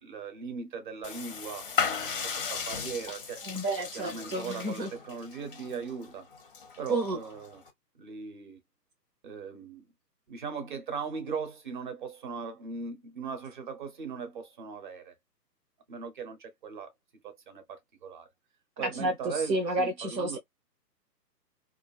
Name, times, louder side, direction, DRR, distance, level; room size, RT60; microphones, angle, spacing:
voice 1, 0.0-3.4 3.9-6.3 6.8-7.6 8.0-8.6 9.2-9.8 10.3-15.1 15.9-16.9 17.2-18.3 18.8-20.4, right 5 dB, 30° right, 0.6 m, -39 dB
sound 1, 1.0-7.7, left 7 dB, 35° left, 0.5 m, -36 dB
voice 2, 3.5-4.9 6.9-7.2 18.8-20.4, right 2 dB, 80° right, 0.9 m, -30 dB
2.4 x 2.4 x 2.3 m
figure-of-eight pair, 135°, 50 cm